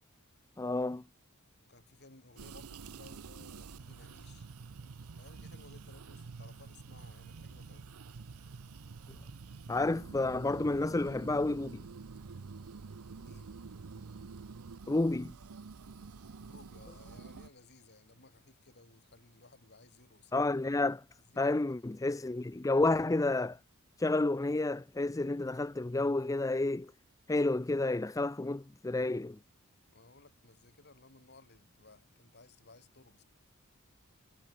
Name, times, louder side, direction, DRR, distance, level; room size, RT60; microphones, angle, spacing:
voice 1, 0.6-1.0 9.7-11.8 14.9-15.3 20.3-21.0 21.4-23.6 24.0-26.9 27.3-29.4, left 2 dB, 15° left, 0.4 m, -30 dB
voice 2, 1.6-4.5 5.1-7.9 13.2-13.5 16.4-20.4 21.3-21.6 29.9-33.2, left 3 dB, 50° left, 4.1 m, -59 dB
sound 1, 2.4-17.5, right 4 dB, 85° right, 0.6 m, -48 dB
head